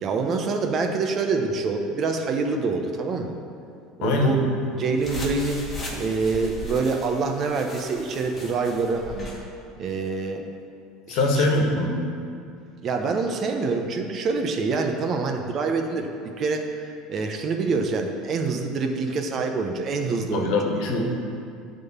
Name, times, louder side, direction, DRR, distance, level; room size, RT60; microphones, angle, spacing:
voice 1, 0.0-3.3 4.0-5.6 6.0-9.3 9.8-10.5 11.1-11.5 12.8-20.6, right 4 dB, 40° right, 4 dB, 0.8 m, -26 dB
voice 2, 4.0-4.4 11.1-12.1 20.3-21.0, left 2 dB, 70° left, 2 dB, 1.4 m, -22 dB
sound 1, 5.0-9.4, left 1 dB, 20° left, 1.7 m, -37 dB
10.5 x 3.8 x 7.2 m, 2.4 s
supercardioid pair, 130°, 0 cm